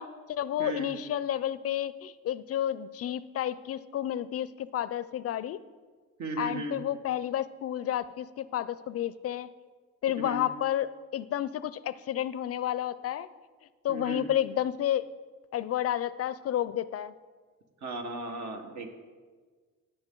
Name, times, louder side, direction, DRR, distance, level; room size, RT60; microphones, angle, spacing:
voice 1, 0.0-5.6 6.4-9.5 10.0-13.3 13.8-15.0 15.5-17.1, left 11 dB, 50° left, 16 dB, 0.4 m, -31 dB
voice 2, 0.6-0.9 6.2-6.8 10.2-10.4 13.9-14.3 17.8-18.9, right 2 dB, 70° right, 4 dB, 1.6 m, -36 dB
16.5 x 7.1 x 3.8 m, 1.5 s
cardioid pair, 90°, 30 cm